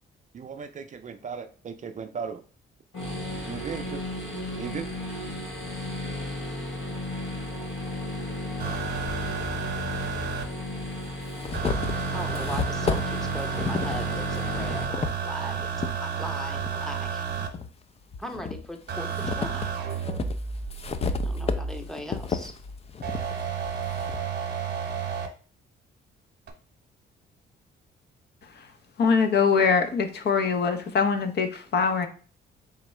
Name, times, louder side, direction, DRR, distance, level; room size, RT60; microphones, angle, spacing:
voice 1, 0.3-2.4 3.5-4.0 4.6-4.8, right 6 dB, 40° right, 7 dB, 0.4 m, -36 dB
sound 1, 2.9-14.8, left 1 dB, 70° left, 1.3 m, -34 dB
sound 2, 8.6-10.4 11.5-17.5 18.9-21.8 23.0-25.3 26.5-26.6, right 6 dB, 55° right, 0.9 m, -31 dB
sound 3, 9.1-9.2 10.3-10.4 10.8-16.0 16.5-17.7 18.1-24.3, left 5 dB, 30° left, 0.4 m, -33 dB
voice 2, 12.1-17.3 18.2-19.7 21.2-22.5, equal, ahead, 5 dB, 0.7 m, -38 dB
voice 3, 29.0-32.1, left 5 dB, 55° left, 7 dB, 0.7 m, -23 dB
3.6 x 3.5 x 3.2 m, 0.40 s
cardioid pair, 90°, 20 cm